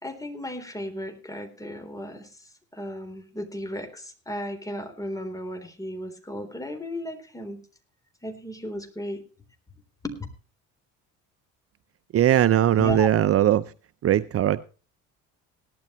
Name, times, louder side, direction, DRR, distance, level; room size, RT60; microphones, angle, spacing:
voice 1, 0.0-2.4 2.7-7.6 8.2-9.2 10.0-10.2 12.8-13.1, left 1 dB, 10° left, 3.7 m, -35 dB
voice 2, 12.1-13.7 14.0-14.6, right 11 dB, 45° right, 0.6 m, -20 dB
18.0 x 12.0 x 3.1 m
cardioid pair, 95°, 33 cm